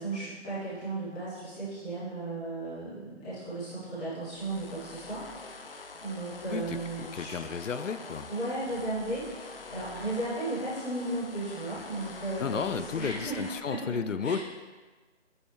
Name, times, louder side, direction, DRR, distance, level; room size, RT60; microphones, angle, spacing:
voice 1, 0.0-5.7 6.0-7.3 8.3-14.0 14.2-14.4, right 2 dB, 5° left, -13 dB, 1.1 m, -35 dB
sound 1, 4.2-13.6, left 3 dB, 50° left, 0.7 m, -45 dB
voice 2, 6.5-8.3 12.4-14.4, left 6 dB, 90° left, 12 dB, 0.6 m, -33 dB
9.4 x 5.3 x 3.5 m, 1.3 s
figure-of-eight pair, 165°, 37 cm